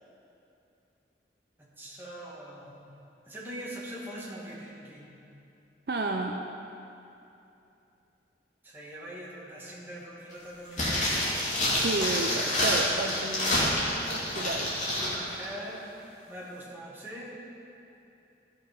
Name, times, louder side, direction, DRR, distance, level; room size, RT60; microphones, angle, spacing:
voice 1, 1.6-2.8 3.3-5.1 8.6-11.0 14.9-16.0 16.3-17.4, equal, 10° right, -6 dB, 2.1 m, -42 dB
voice 2, 5.9-6.4 11.8-13.6 14.1-14.8, right 3 dB, 60° right, 3 dB, 0.5 m, -32 dB
sound 1, 10.7-15.2 15.4-15.5, left 1 dB, 40° left, 2.6 m, -28 dB
14.5 x 6.6 x 5.4 m, 2.8 s
head